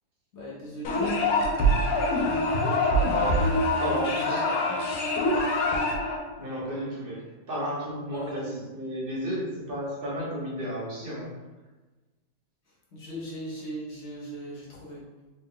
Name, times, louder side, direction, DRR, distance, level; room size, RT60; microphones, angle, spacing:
voice 1, 0.3-1.3 3.4-3.8 4.5-4.8 8.1-8.7 12.9-15.0, equal, 45° left, -6 dB, 0.9 m, -38 dB
sound 1, 0.8-6.2, left 1 dB, 75° left, 0.8 m, -24 dB
voice 2, 3.0-4.5 6.4-11.4, equal, 40° right, -6 dB, 0.8 m, -33 dB
4.1 x 2.2 x 3.6 m, 1.2 s
omnidirectional pair, 2.1 m